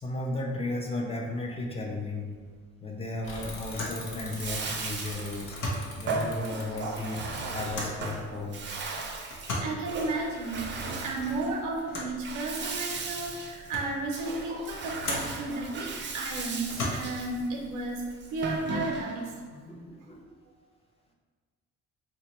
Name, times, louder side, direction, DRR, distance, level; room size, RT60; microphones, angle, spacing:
voice 1, 0.0-2.3 2.8-5.6 6.0-8.6 19.7-20.2, left 2 dB, 20° left, 0 dB, 0.6 m, -34 dB
sound 1, 2.4-2.7 3.0-3.1 3.7-4.1 5.4-6.0 7.7-8.1 9.3-9.8 11.9-12.2 13.0-13.1 13.4-14.0 15.0-15.4 16.6-17.3, left 1 dB, 80° left, 0.8 m, -35 dB
Bicycle / Mechanisms, 3.2-8.7, left 1 dB, 45° left, 0.9 m, -44 dB
Bathtub (filling or washing), 4.2-19.3, right 3 dB, 40° right, 0.5 m, -37 dB
voice 2, 9.6-18.0 18.3-19.8, right 2 dB, 90° right, 0 dB, 0.5 m, -33 dB
4.2 x 2.1 x 2.9 m, 1.5 s
cardioid pair, 90°, 30 cm